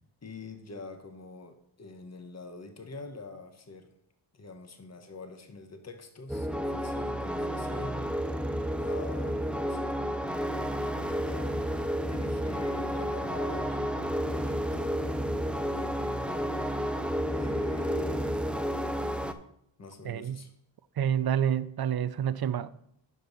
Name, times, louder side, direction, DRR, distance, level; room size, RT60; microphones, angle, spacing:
voice 1, 0.2-3.9 4.3-8.1 8.8-11.6 12.0-16.5 17.3-18.4 18.9-19.2 19.8-20.5, left 3 dB, 35° left, 1.2 m, -45 dB
sound 1, 6.3-19.3, equal, ahead, 0.6 m, -31 dB
sound 2, 11.4-16.1, left 2 dB, 60° left, 3.8 m, -50 dB
voice 2, 20.0-20.4 21.0-22.7, right 9 dB, 50° right, 0.6 m, -28 dB
11.0 x 5.4 x 4.1 m
cardioid pair, 60°, 47 cm